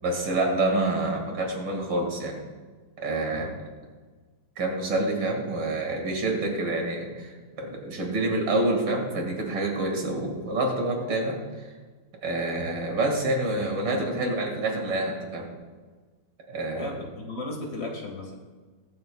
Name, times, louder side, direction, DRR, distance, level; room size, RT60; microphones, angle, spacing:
voice 1, 0.0-2.4 3.0-3.5 4.6-11.7 12.2-15.5 16.5-16.9, right 2 dB, 80° right, 1 dB, 2.8 m, -27 dB
voice 2, 3.3-3.6 16.7-18.3, left 2 dB, 55° left, 1 dB, 2.2 m, -36 dB
22.0 x 7.9 x 2.3 m, 1.4 s
omnidirectional pair, 2.0 m